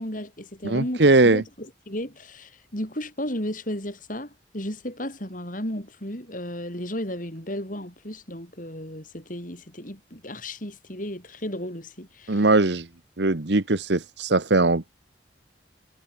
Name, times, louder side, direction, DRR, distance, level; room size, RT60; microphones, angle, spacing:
voice 1, 0.0-12.5, left 1 dB, 45° left, 6.7 m, -34 dB
voice 2, 0.6-1.4 12.3-12.9 13.2-14.9, right 2 dB, 65° right, 1.2 m, -20 dB
head